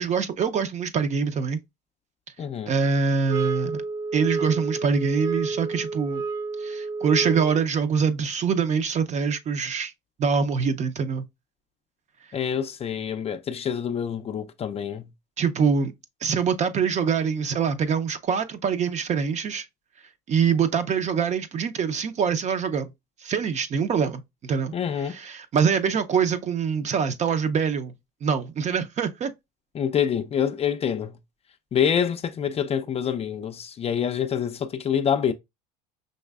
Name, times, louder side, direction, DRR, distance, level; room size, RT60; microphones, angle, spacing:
voice 1, 0.0-1.6 2.7-3.8 4.1-6.2 6.6-9.9 10.2-11.2 15.4-15.9 16.2-19.7 20.3-22.9 23.2-24.7 25.1-27.9 28.2-29.3, right 6 dB, 35° right, 0.6 m, -24 dB
voice 2, 2.4-2.7 12.3-15.1 24.7-25.2 29.7-31.2 31.7-35.3, left 8 dB, 30° left, 0.4 m, -26 dB
sound 1, 3.3-7.6, right 4 dB, 85° right, 0.5 m, -30 dB
5.3 x 3.1 x 2.3 m
supercardioid pair, 90°, 21 cm